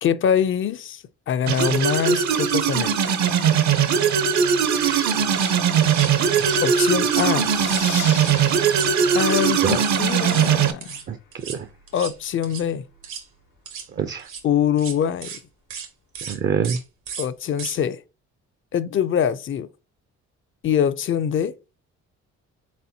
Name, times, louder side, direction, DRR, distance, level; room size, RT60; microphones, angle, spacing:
voice 1, 0.0-3.0 6.6-7.5 9.1-11.0 11.9-12.8 14.4-15.4 17.2-18.0 18.7-19.7 20.6-21.6, left 8 dB, 45° left, 0.4 m, -23 dB
sound 1, 1.5-10.7, right 7 dB, 70° right, 0.7 m, -20 dB
voice 2, 4.7-5.2 6.4-6.5 9.6-9.8 11.1-11.2 11.4-11.7 13.9-14.3 16.2-16.8, right 7 dB, 35° right, 0.4 m, -26 dB
sound 2, 5.3-5.5 5.8-6.7 7.0-7.3 7.6-8.3 8.6-10.0 10.3-10.5 10.8-11.0 11.3-11.6 11.9-12.1 12.4-12.6 13.0-13.2 13.7-13.9 14.2-14.4 14.8-14.9 15.2-15.4 15.7-15.9 16.1-16.4 16.6-16.8 17.1-17.3 17.6-17.8, right 7 dB, 85° right, 1.3 m, -35 dB
sound 3, 7.4-10.7, left 7 dB, 85° left, 1.0 m, -38 dB
4.2 x 3.9 x 2.7 m
cardioid pair, 90°, 30 cm